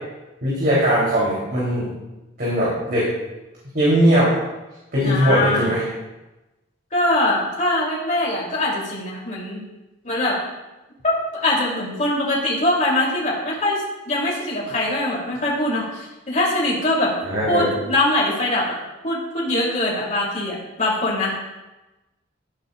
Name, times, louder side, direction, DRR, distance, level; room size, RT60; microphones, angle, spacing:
voice 1, 0.4-1.9 2.4-3.1 3.7-4.3 4.9-5.8 17.2-17.7, equal, 50° right, -8 dB, 3.3 m, -19 dB
voice 2, 5.0-5.7 6.9-9.6 10.0-10.4 11.0-17.1 17.5-18.8 19.0-21.3, left 1 dB, 40° left, -4 dB, 3.0 m, -22 dB
13.5 x 10.5 x 2.4 m, 1.0 s
head